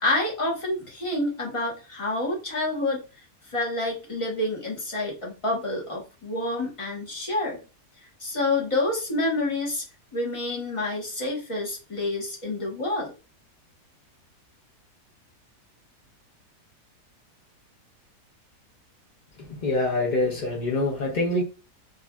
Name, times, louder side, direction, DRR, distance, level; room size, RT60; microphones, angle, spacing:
voice 1, 0.0-3.0 3.5-7.6 8.2-9.8 10.1-13.1, left 2 dB, 25° left, 0.7 m, -28 dB
voice 2, 19.4-21.4, left 2 dB, 75° left, 0.4 m, -25 dB
3.1 x 2.6 x 2.3 m
omnidirectional pair, 1.8 m